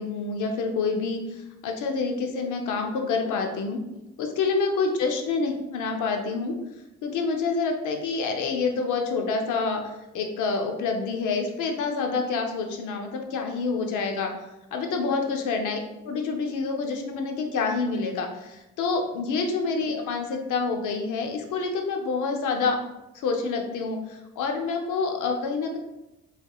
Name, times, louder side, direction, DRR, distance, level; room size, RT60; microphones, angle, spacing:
voice 1, 0.0-3.8 4.2-6.5 7.0-14.3 14.7-15.8 16.0-22.8 23.1-25.8, left 4 dB, 80° left, 3 dB, 0.8 m, -27 dB
5.3 x 3.4 x 2.4 m, 0.97 s
cardioid pair, 90°, 30 cm